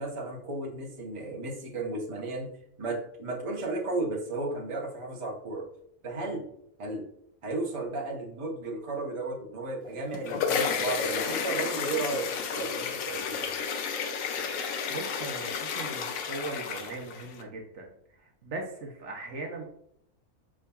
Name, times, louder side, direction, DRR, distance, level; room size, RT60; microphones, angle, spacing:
voice 1, 0.0-2.5 2.8-5.7 6.0-6.4 6.8-7.0 7.4-13.6, right 2 dB, 30° right, -1 dB, 0.8 m, -34 dB
sound 1, 9.9-17.4, left 6 dB, 85° left, 1.0 m, -32 dB
voice 2, 14.9-17.9 18.2-19.7, right 3 dB, 65° right, 1 dB, 1.0 m, -39 dB
5.3 x 3.6 x 2.2 m, 0.72 s
omnidirectional pair, 1.4 m